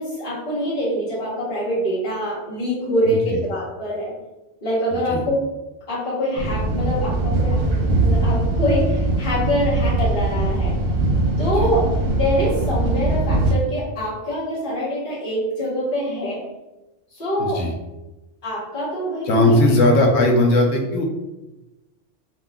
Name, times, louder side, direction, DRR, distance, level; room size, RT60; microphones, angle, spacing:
voice 1, 0.0-4.1 4.6-5.4 5.9-10.7 11.4-11.8 12.1-16.4 17.1-17.6 18.4-19.6, equal, 50° left, -7 dB, 1.3 m, -24 dB
sound 1, 6.3-13.5, right 2 dB, 65° right, 0.9 m, -21 dB
voice 2, 17.4-17.7 19.3-21.0, left 1 dB, 70° left, 1 dB, 0.9 m, -17 dB
2.8 x 2.2 x 3.4 m, 1.0 s
omnidirectional pair, 1.2 m